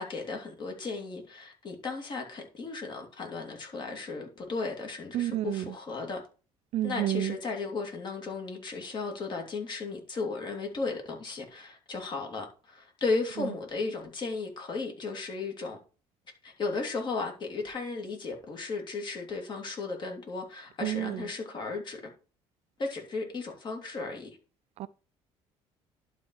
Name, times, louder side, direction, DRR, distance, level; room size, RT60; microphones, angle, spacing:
voice 1, 0.0-6.2 6.8-15.8 16.4-22.0 22.8-24.4, left 3 dB, 40° left, 2.8 m, -35 dB
voice 2, 5.1-5.7 6.7-7.3 20.8-21.2 24.8-24.9, right 13 dB, 60° right, 0.5 m, -30 dB
11.0 x 4.2 x 4.7 m
cardioid pair, 115°, 12 cm